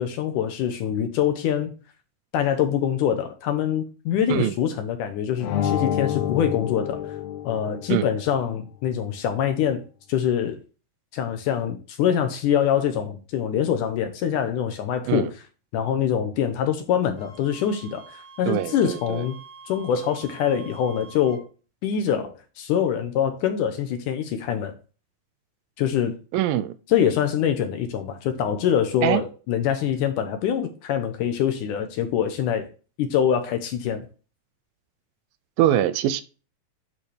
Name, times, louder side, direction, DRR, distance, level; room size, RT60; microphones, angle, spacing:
voice 1, 0.0-1.7 2.3-7.2 7.4-9.8 10.1-10.6 11.1-15.3 15.7-19.4 19.7-21.4 21.8-24.7 25.8-26.1 26.9-32.7 33.0-34.1, left 9 dB, 75° left, 2.1 m, -24 dB
sound 1, 5.4-8.1, left 10 dB, 90° left, 1.5 m, -28 dB
Wind instrument woodwind instrument, 17.2-21.4, right 4 dB, 55° right, 0.7 m, -46 dB
voice 2, 18.5-19.3 26.3-26.8 29.0-29.2 35.6-36.2, right 12 dB, 80° right, 2.2 m, -23 dB
10.5 x 4.2 x 3.3 m
omnidirectional pair, 4.2 m